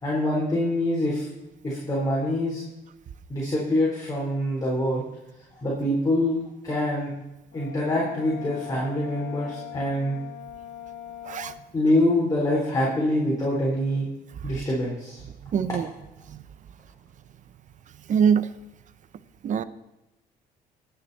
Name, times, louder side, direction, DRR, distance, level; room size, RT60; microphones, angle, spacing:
voice 1, 0.0-1.3 1.6-2.6 3.3-5.0 5.6-6.4 6.6-7.1 7.5-10.2 11.7-14.1 14.4-15.2, left 1 dB, 20° left, -5 dB, 4.0 m, -25 dB
Brass instrument, 7.5-11.6, left 11 dB, 65° left, 2.1 m, -41 dB
voice 2, 15.5-15.9 16.3-16.4 18.1-18.5 19.4-19.6, right 7 dB, 45° right, 15 dB, 0.8 m, -23 dB
20.0 x 8.0 x 4.2 m, 0.94 s
cardioid pair, 110°, 17 cm